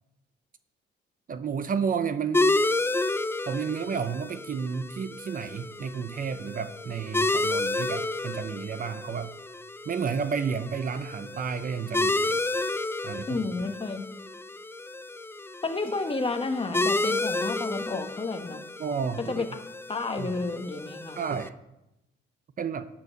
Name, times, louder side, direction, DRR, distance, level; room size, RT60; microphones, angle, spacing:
voice 1, 1.3-2.7 3.5-9.3 9.9-12.4 13.0-13.4 18.8-19.4 20.2-20.4 21.2-21.5 22.6-22.9, right 6 dB, 45° right, 12 dB, 0.7 m, -31 dB
sound 1, 2.3-21.5, left 2 dB, 10° left, 0.5 m, -31 dB
voice 2, 13.3-14.1 15.6-18.6 19.2-19.6 19.9-21.2, left 3 dB, 25° left, 7 dB, 1.3 m, -31 dB
11.5 x 6.9 x 6.5 m, 0.92 s
cardioid pair, 90°, 20 cm